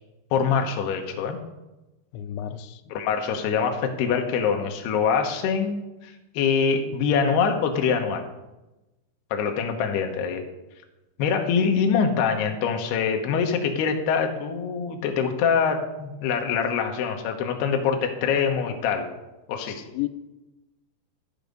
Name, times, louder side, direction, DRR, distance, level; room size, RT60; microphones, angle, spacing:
voice 1, 0.3-1.4 2.9-8.2 9.3-10.4 11.2-19.1 19.5-19.8, left 6 dB, 70° left, 3 dB, 3.0 m, -24 dB
voice 2, 2.1-2.8 19.7-20.1, left 13 dB, 90° left, 11 dB, 3.0 m, -32 dB
13.0 x 8.3 x 5.2 m, 1.0 s
omnidirectional pair, 5.1 m